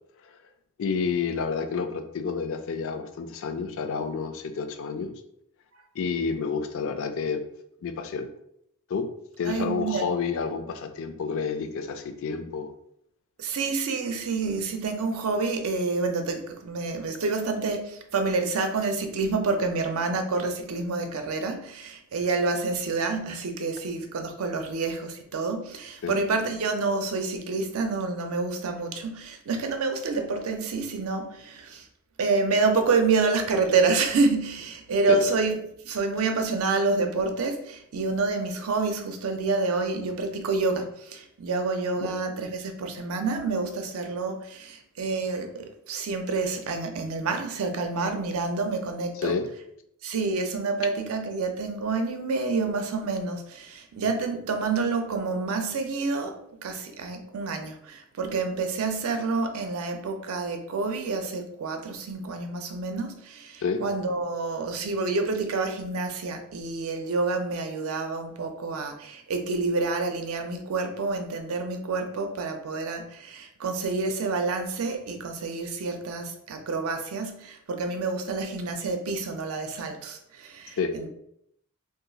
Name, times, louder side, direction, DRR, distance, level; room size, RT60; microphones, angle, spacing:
voice 1, 0.8-5.1 6.0-7.4 7.8-8.3 8.9-9.1 9.4-12.7 26.0-26.2 35.1-35.2 42.0-42.1 49.2-49.5 63.6-63.8 80.8-81.0, left 5 dB, 60° left, 9 dB, 0.4 m, -29 dB
voice 2, 9.4-10.1 13.4-31.9 32.2-35.6 35.8-49.4 50.0-81.1, right 3 dB, 70° right, 6 dB, 0.5 m, -28 dB
2.5 x 2.3 x 3.9 m, 0.74 s
head